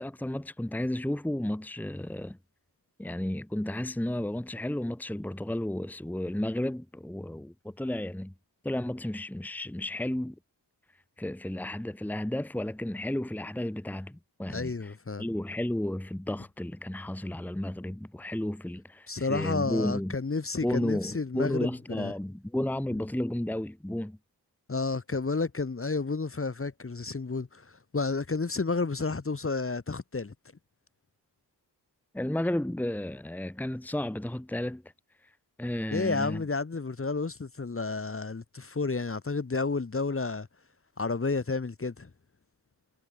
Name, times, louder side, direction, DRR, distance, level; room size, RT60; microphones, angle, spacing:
voice 1, 0.0-2.4 3.0-8.3 8.6-10.4 11.2-20.1 20.6-24.2 32.1-34.8 35.6-36.4, left 1 dB, 5° left, 1.2 m, -32 dB
voice 2, 14.5-15.2 19.1-21.7 22.0-22.1 24.7-27.7 27.9-30.3 35.9-40.5 41.0-42.1, left 4 dB, 30° left, 1.4 m, -31 dB
cardioid pair, 55°, 41 cm